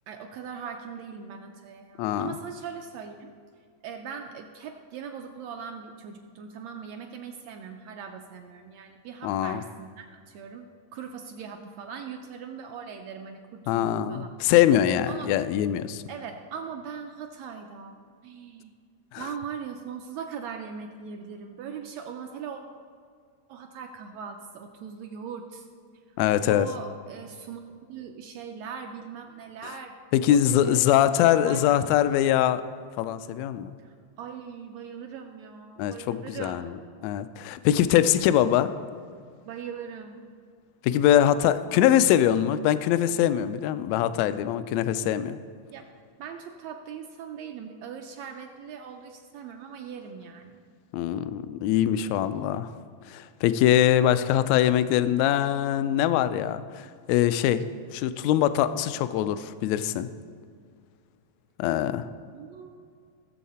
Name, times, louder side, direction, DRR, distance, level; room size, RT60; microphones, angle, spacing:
voice 1, 0.1-3.3 3.8-10.7 10.9-14.3 15.1-15.4 16.1-18.0 18.2-18.7 19.2-22.6 23.5-25.7 26.5-27.6 27.9-30.0 30.3-31.1 31.4-31.9 33.8-36.7 39.5-40.2 45.7-45.9 46.2-50.6 52.1-52.5 62.3-63.0, right 6 dB, 75° right, 4 dB, 1.6 m, -40 dB
voice 2, 2.0-2.4 9.2-9.6 13.7-16.0 19.1-19.2 26.2-26.7 30.1-32.6 33.0-33.7 35.8-36.7 37.0-38.7 40.8-45.4 50.9-52.7 53.1-57.6 57.9-60.1 61.6-62.1, left 11 dB, 80° left, 13 dB, 1.6 m, -23 dB
17.0 x 7.4 x 4.2 m, 2.2 s
omnidirectional pair, 3.6 m